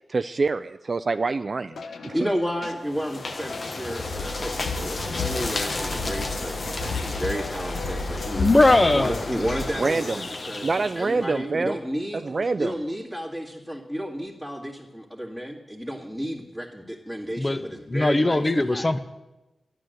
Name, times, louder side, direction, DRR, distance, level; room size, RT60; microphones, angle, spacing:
voice 1, 0.1-1.8 2.1-2.2 9.8-10.3 10.6-11.8 12.2-12.8, right 3 dB, 50° right, 10 dB, 0.4 m, -25 dB
sound 1, 1.7-10.0, left 5 dB, 90° left, 0.9 m, -38 dB
voice 2, 2.1-8.5 8.9-10.7 10.9-12.2 12.6-18.9, equal, 10° left, -6 dB, 2.2 m, -32 dB
sound 2, 2.8-11.3, left 3 dB, 55° left, 1.3 m, -33 dB
sound 3, 4.1-9.7, left 1 dB, 75° left, 3.3 m, -35 dB
voice 3, 8.4-9.2 17.4-19.0, left 2 dB, 25° left, 12 dB, 0.9 m, -20 dB
12.0 x 10.5 x 8.0 m, 1.0 s
wide cardioid pair, 90°, 0 cm